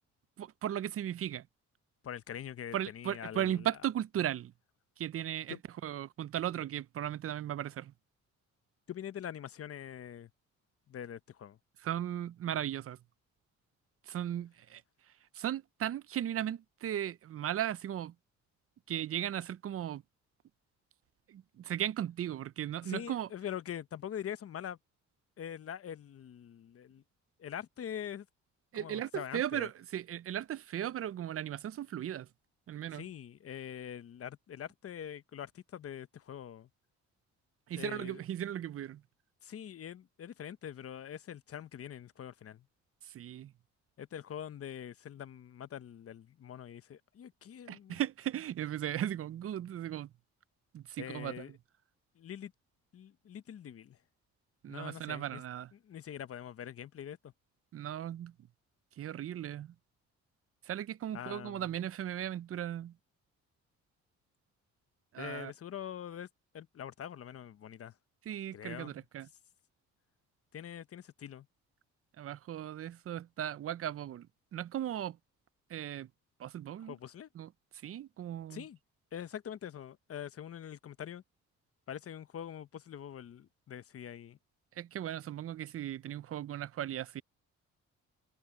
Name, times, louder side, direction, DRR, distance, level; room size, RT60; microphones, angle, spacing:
voice 1, 0.4-1.5 2.7-4.5 5.0-7.9 11.8-13.0 14.1-14.8 15.3-18.1 18.9-20.0 21.3-23.3 28.7-32.3 32.7-33.1 37.7-39.0 43.0-43.5 47.7-50.1 50.7-51.4 54.6-55.7 57.7-58.3 59.0-59.7 60.6-62.9 65.1-65.5 68.3-69.3 72.2-75.2 75.7-76.1 76.4-77.0 77.3-77.5 77.8-78.6 84.8-87.2, right 11 dB, 50° right, 0.6 m, -37 dB
voice 2, 2.0-3.7 5.5-5.6 8.9-10.3 10.9-11.6 22.8-24.8 25.4-27.0 27.4-28.3 28.7-29.7 32.9-36.7 37.7-38.2 39.4-42.6 44.0-48.0 51.0-51.5 52.2-52.5 52.9-54.0 54.7-55.4 55.7-57.3 61.1-61.7 65.2-66.3 66.5-67.9 68.5-69.0 70.5-71.5 76.8-77.3 78.5-78.8 79.1-81.2 81.9-84.4, left 9 dB, 50° left, 1.0 m, -44 dB
open air
cardioid pair, 90°, 30 cm